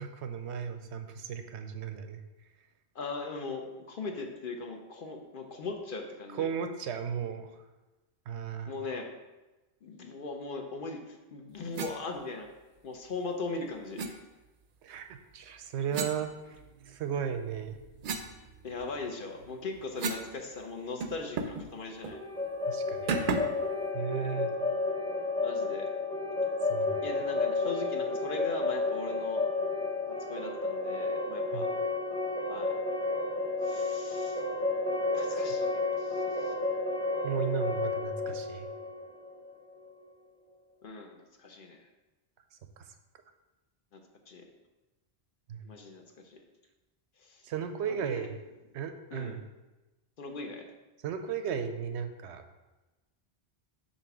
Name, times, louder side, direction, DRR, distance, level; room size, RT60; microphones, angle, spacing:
voice 1, 0.0-2.2 6.3-7.5 8.3-8.7 14.8-16.6 16.9-17.8 22.7-23.3 23.9-24.5 26.7-27.0 31.5-31.7 37.2-38.7 42.8-42.9 45.5-45.6 47.4-48.4 48.7-49.4 51.0-52.4, right 7 dB, 90° right, 8 dB, 0.9 m, -35 dB
voice 2, 2.9-6.5 8.7-9.1 9.8-12.5 12.8-14.2 18.6-22.2 25.4-25.9 27.0-29.4 30.1-31.7 32.5-32.8 33.6-34.4 35.1-36.5 40.8-41.8 43.9-44.0 44.3-44.5 45.6-46.4 47.2-47.5 47.8-48.3 49.1-49.4 50.2-50.7, left 3 dB, 55° left, 3 dB, 0.8 m, -39 dB
sound 1, 11.7-12.0 14.0-14.1 15.9-17.0 17.4-20.3 20.6-20.7 21.0-21.7 22.0-22.2 23.1-23.6, right 4 dB, 60° right, 0.6 m, -35 dB
sound 2, 22.1-39.9, left 3 dB, 5° left, 0.6 m, -32 dB
7.0 x 2.8 x 5.8 m, 1.1 s
omnidirectional pair, 1.1 m